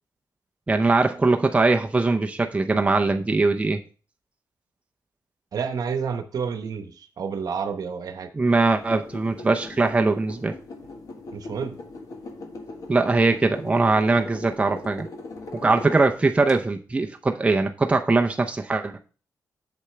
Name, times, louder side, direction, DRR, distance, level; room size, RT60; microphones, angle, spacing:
voice 1, 0.7-3.8 8.3-10.6 12.9-15.1 15.6-18.9, right 3 dB, 20° right, 4 dB, 0.6 m, -21 dB
voice 2, 5.5-8.3 11.3-11.8, right 6 dB, 65° right, 8 dB, 1.0 m, -29 dB
sound 1, 8.8-16.5, left 2 dB, 55° left, 1.4 m, -40 dB
8.1 x 6.9 x 3.3 m, 0.38 s
wide cardioid pair, 115°, 7 cm